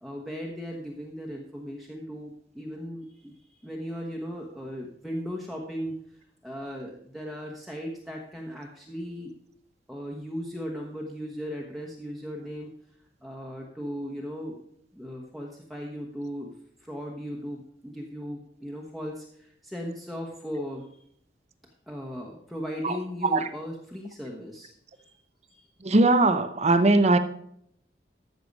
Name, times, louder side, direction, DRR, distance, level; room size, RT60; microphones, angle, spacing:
voice 1, 0.0-6.0 6.4-9.3 9.9-12.7 13.2-14.6 14.9-20.9 21.9-24.7 25.0-25.1 25.5-25.9, equal, ahead, -1 dB, 1.1 m, -37 dB
voice 2, 25.8-27.2, right 2 dB, 40° right, 10 dB, 0.8 m, -20 dB
13.5 x 6.7 x 5.3 m, 0.71 s
head